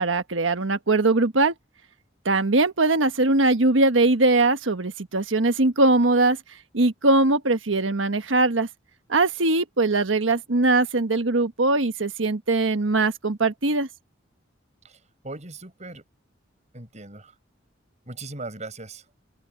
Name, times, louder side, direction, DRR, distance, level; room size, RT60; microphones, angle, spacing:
voice 1, 0.0-1.5 2.2-6.4 6.7-8.7 9.1-13.9, right 2 dB, 90° right, 1.3 m, -21 dB
voice 2, 15.2-16.0 16.7-17.3 18.1-19.0, right 2 dB, 40° right, 6.3 m, -38 dB
open air
head